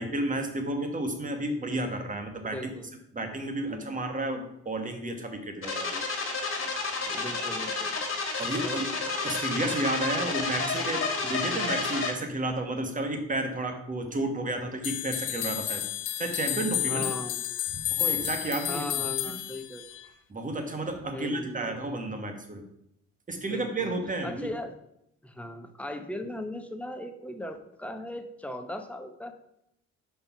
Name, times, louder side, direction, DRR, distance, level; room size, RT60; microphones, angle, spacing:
voice 1, 0.0-2.6 3.1-6.1 8.4-8.9 9.2-15.8 16.2-17.1 17.7-19.3 20.3-22.6 23.3-24.5, right 1 dB, 25° right, 5 dB, 1.3 m, -32 dB
voice 2, 2.4-2.9 3.6-3.9 7.0-8.0 8.6-9.2 16.9-17.5 18.7-19.8 21.1-21.7 23.5-23.9 24.2-24.8 25.2-29.3, left 1 dB, 5° left, 6 dB, 0.8 m, -38 dB
sound 1, 5.6-12.1, left 4 dB, 45° left, 1.8 m, -30 dB
sound 2, 14.8-20.1, left 13 dB, 85° left, 0.7 m, -31 dB
5.4 x 4.5 x 5.7 m, 0.79 s
cardioid pair, 90°, 30 cm